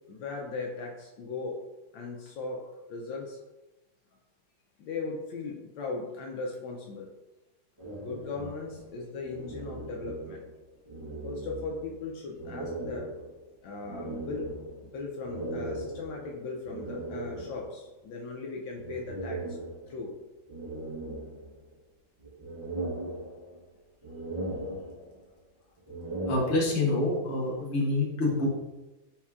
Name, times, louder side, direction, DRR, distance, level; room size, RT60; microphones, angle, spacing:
voice 1, 0.1-1.6 1.9-3.4 4.8-7.1 8.0-10.4 11.2-13.1 13.6-14.5 14.8-19.6 19.9-20.1, left 3 dB, 75° left, -1 dB, 1.3 m, -38 dB
sound 1, 7.8-10.6 10.9-12.0 12.4-17.8 18.8-20.1 20.5-21.8 22.2-23.7 24.0-25.3 25.8-27.1, right 2 dB, 25° right, 0.8 m, -38 dB
voice 2, 26.3-28.5, left 2 dB, 45° left, -3 dB, 1.1 m, -27 dB
4.3 x 4.2 x 2.4 m, 1.0 s
omnidirectional pair, 2.2 m